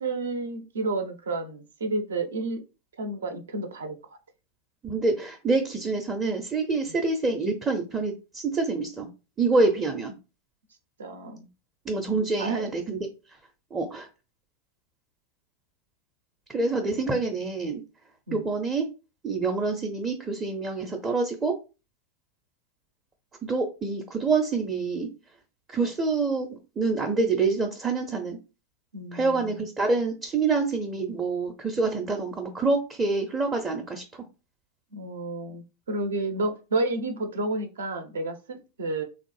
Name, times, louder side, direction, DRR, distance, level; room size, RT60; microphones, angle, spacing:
voice 1, 0.0-2.6 3.0-4.0 11.0-11.5 12.4-12.7 18.3-18.4 28.9-29.6 34.9-39.0, right 2 dB, 65° right, 6 dB, 0.6 m, -31 dB
voice 2, 4.8-9.1 9.4-10.1 11.9-13.0 13.7-14.1 16.5-17.8 18.3-18.9 19.2-21.6 23.4-25.1 25.7-26.5 26.8-28.4 29.1-34.2, right 3 dB, 15° right, 1 dB, 0.5 m, -26 dB
3.1 x 2.1 x 3.2 m, 0.30 s
figure-of-eight pair, 90°, 0 cm